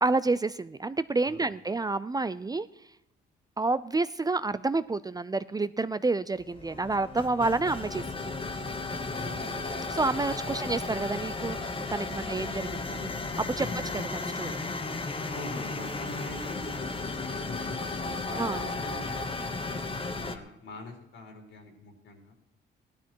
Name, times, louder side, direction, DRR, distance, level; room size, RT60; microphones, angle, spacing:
voice 1, 0.0-2.7 3.6-8.3 9.9-13.7 13.9-14.6 18.4-18.6, right 3 dB, 20° right, 14 dB, 0.5 m, -29 dB
sound 1, 6.4-20.4, left 3 dB, 25° left, 1.3 m, -34 dB
voice 2, 9.1-9.7 10.4-10.8 12.1-12.4 13.6-13.8 15.3-22.3, left 2 dB, 75° left, 2 dB, 4.1 m, -44 dB
16.0 x 12.0 x 4.6 m, 0.83 s
cardioid pair, 90°, 20 cm